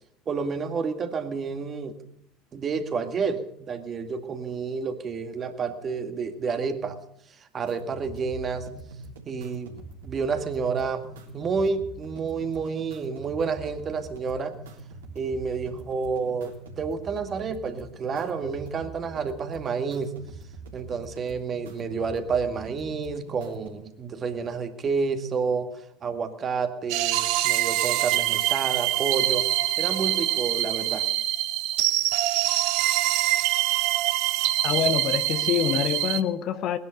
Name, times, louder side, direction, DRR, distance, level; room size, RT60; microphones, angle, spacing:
voice 1, 0.3-2.0 2.5-7.0 7.5-8.7 9.3-11.0 11.3-14.6 15.2-20.1 20.7-25.7 26.0-29.5 29.8-31.0, right 5 dB, 35° right, 7 dB, 1.9 m, -29 dB
sound 1, 7.7-23.7, right 3 dB, 75° right, 3.3 m, -43 dB
sound 2, 26.9-36.2, right 15 dB, 60° right, 0.9 m, -24 dB
voice 2, 34.6-36.8, left 9 dB, 50° left, 13 dB, 1.0 m, -26 dB
20.0 x 11.0 x 6.6 m, 0.73 s
figure-of-eight pair, 70°, 0 cm